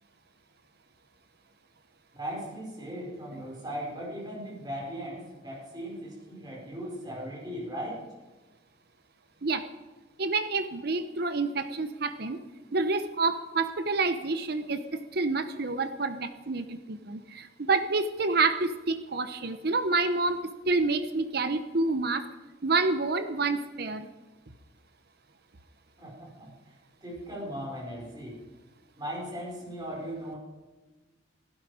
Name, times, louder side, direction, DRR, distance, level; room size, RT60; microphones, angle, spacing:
voice 1, 2.1-8.0 26.0-26.5 27.0-28.4 28.9-30.4, equal, 20° right, -3 dB, 4.9 m, -38 dB
voice 2, 10.2-12.4 12.7-22.3 22.6-24.1, right 3 dB, 55° right, 11 dB, 0.9 m, -28 dB
16.5 x 15.5 x 4.9 m, 1.2 s
head